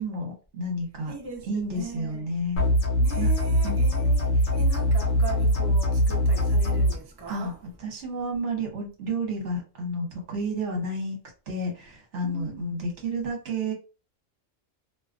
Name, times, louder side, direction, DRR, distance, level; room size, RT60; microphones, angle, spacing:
voice 1, 0.0-1.1 1.5-2.6 3.2-3.3 3.6-3.7 7.3-11.2 11.5-13.7, right 1 dB, 65° right, 1.2 m, -31 dB
voice 2, 1.1-2.3 3.0-7.6 12.2-12.7, right 4 dB, 40° right, 0.3 m, -39 dB
sound 1, 2.6-7.0, equal, 80° left, 1.0 m, -22 dB
2.5 x 2.3 x 2.4 m
omnidirectional pair, 1.4 m